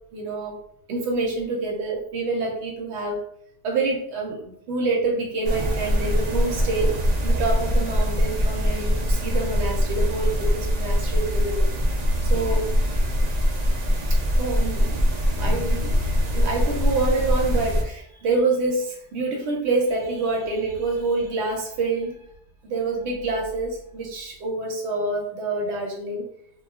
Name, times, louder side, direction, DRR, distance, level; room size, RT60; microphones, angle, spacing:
voice 1, 0.1-0.6 0.9-3.2 3.6-11.7 12.3-12.7 14.4-16.1 16.3-22.2 22.6-26.2, right 3 dB, 90° right, -1 dB, 0.9 m, -27 dB
sound 1, 5.4-17.8, equal, 50° right, 0.5 m, -22 dB
2.2 x 2.0 x 3.4 m, 0.68 s
omnidirectional pair, 1.1 m